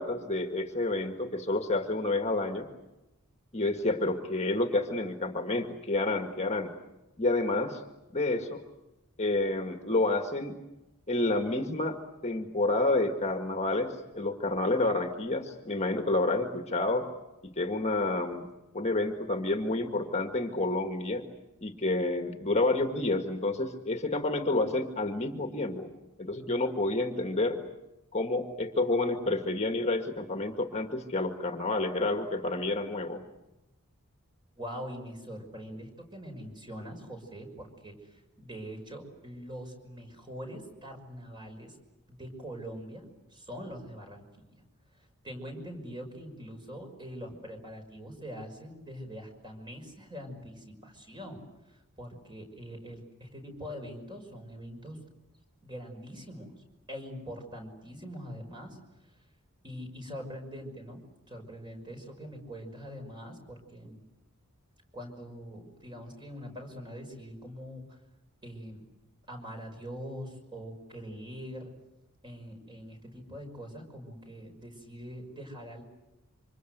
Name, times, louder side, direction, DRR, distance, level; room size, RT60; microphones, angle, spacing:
voice 1, 0.0-2.7 3.5-6.7 7.2-7.8 8.1-8.6 9.2-10.6 11.1-12.0 12.2-17.1 17.4-18.5 18.7-21.2 21.6-25.9 26.2-27.6 28.1-33.2, left 2 dB, 30° left, 5 dB, 1.8 m, -29 dB
voice 2, 34.6-41.8 42.1-43.1 43.3-44.6 45.0-51.4 51.7-55.0 55.6-58.8 59.6-61.0 61.3-64.0 64.9-68.0 68.4-68.8 69.3-71.7 72.2-75.8, equal, 20° right, 3 dB, 5.8 m, -43 dB
27.5 x 26.0 x 8.0 m, 1.0 s
head